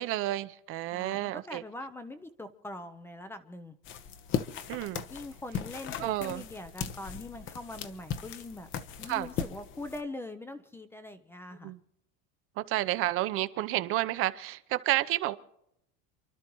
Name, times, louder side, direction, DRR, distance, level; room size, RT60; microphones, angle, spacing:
voice 1, 0.0-1.6 4.7-5.0 6.0-6.4 9.1-9.3 11.6-11.8 12.6-15.3, right 16 dB, 45° right, 0.7 m, -30 dB
voice 2, 0.9-3.7 5.1-8.7 9.0-11.7, left 2 dB, 10° left, 0.6 m, -42 dB
sound 1, 3.8-10.0, left 8 dB, 40° left, 1.0 m, -38 dB
28.5 x 12.0 x 3.1 m
cardioid pair, 160°, 30 cm